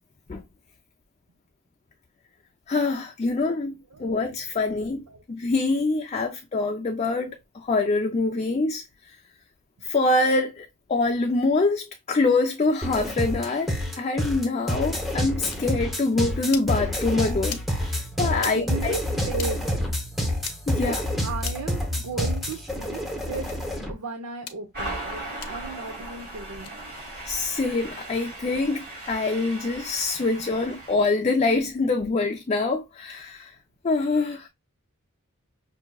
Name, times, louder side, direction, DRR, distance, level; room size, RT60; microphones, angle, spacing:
voice 1, 2.7-8.8 9.8-19.0 20.7-21.0 27.3-33.5 33.8-34.5, left 3 dB, 30° left, 0.4 m, -25 dB
voice 2, 3.9-4.2 4.6-5.2 18.3-19.7 20.8-21.0 21.2-23.0 23.3-23.6 23.9-26.7, right 4 dB, 85° right, 0.7 m, -35 dB
sound 1, 12.8-23.9, left 1 dB, ahead, 0.8 m, -28 dB
sound 2, 15.5-15.6 16.4-16.7 17.4-17.7 18.3-18.5 19.3-19.5 20.4-20.6 21.4-21.7 22.4-22.6 23.4-23.6 24.4-24.6 25.4-25.5 26.5-26.7, left 9 dB, 90° left, 0.7 m, -38 dB
sound 3, 24.7-30.9, right 1 dB, 40° right, 2.4 m, -38 dB
5.8 x 2.7 x 2.3 m
head